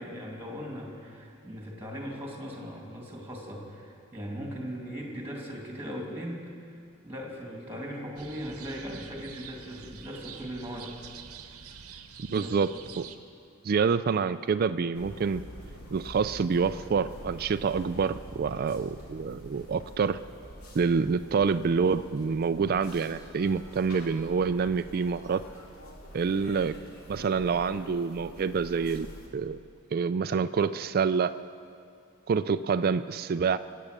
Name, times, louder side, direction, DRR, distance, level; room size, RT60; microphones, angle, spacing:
voice 1, 0.0-6.4 7.0-10.9 12.3-12.6, equal, 10° right, -1 dB, 2.5 m, -39 dB
sound 1, 8.2-13.2, right 7 dB, 75° right, 0.9 m, -46 dB
voice 2, 12.3-12.7 13.0-13.1 13.6-15.4 15.9-20.2 20.7-25.4 26.1-26.7 27.1-29.1 29.3-29.6 29.9-31.3 32.3-33.6, right 5 dB, 40° right, 11 dB, 0.3 m, -27 dB
sound 2, 14.9-29.3, equal, 75° left, 2.5 m, -46 dB
24.0 x 8.5 x 6.7 m, 2.4 s
head